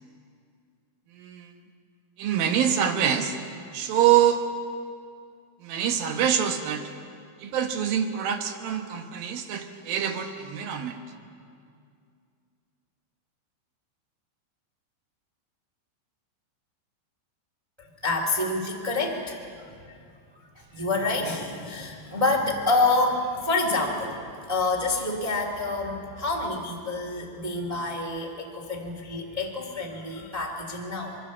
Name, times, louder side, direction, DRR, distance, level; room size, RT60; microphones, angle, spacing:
voice 1, 1.1-1.5 2.2-3.4 3.7-4.4 5.6-6.9 7.4-11.0, right 9 dB, 70° right, 6 dB, 2.4 m, -25 dB
voice 2, 17.8-20.0 20.5-24.2 24.5-31.2, left 2 dB, 30° right, 0 dB, 0.6 m, -28 dB
25.0 x 22.5 x 7.3 m, 2.3 s
omnidirectional pair, 5.4 m